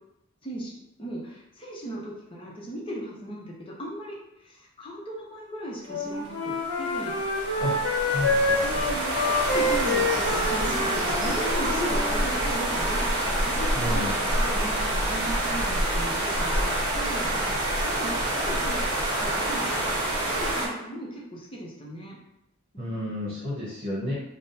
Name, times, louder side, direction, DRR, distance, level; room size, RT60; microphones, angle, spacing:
voice 1, 0.4-7.2 8.6-14.0 14.4-22.2 22.7-23.0 23.3-23.4, right 1 dB, 25° left, -4 dB, 0.8 m, -37 dB
Wind instrument woodwind instrument, 5.9-12.3, left 2 dB, 90° left, 0.9 m, -27 dB
sound 1, 6.4-20.7, right 1 dB, 20° right, 1.4 m, -27 dB
voice 2, 8.0-8.6 13.7-14.1 22.8-24.1, left 1 dB, 40° right, -11 dB, 1.2 m, -31 dB
3.6 x 2.2 x 4.1 m, 0.85 s
head